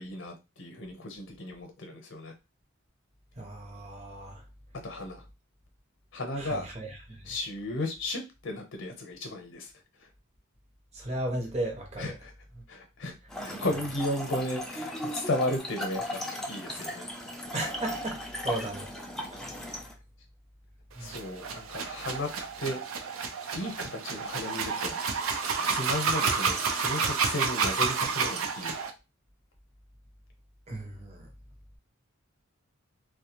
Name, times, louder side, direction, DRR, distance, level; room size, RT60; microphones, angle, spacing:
voice 1, 0.0-2.3 4.8-5.2 6.1-6.7 7.2-9.7 10.0-10.1 12.0-12.3 12.7-13.1 13.4-16.2 16.5-17.1 21.0-22.3 22.6-22.8 23.5-25.0 25.7-28.8, left 1 dB, 60° left, 0.7 m, -34 dB
voice 2, 3.4-4.4 6.4-7.3 10.9-12.1 17.5-18.9 19.3-19.7 21.0-21.1 30.7-31.3, right 1 dB, 30° right, 0.7 m, -36 dB
Trickle dribble / Fill (with liquid), 13.3-19.9, left 1 dB, ahead, 0.3 m, -37 dB
sound 1, 21.0-28.9, right 5 dB, 85° right, 0.5 m, -30 dB
2.4 x 2.2 x 2.8 m
head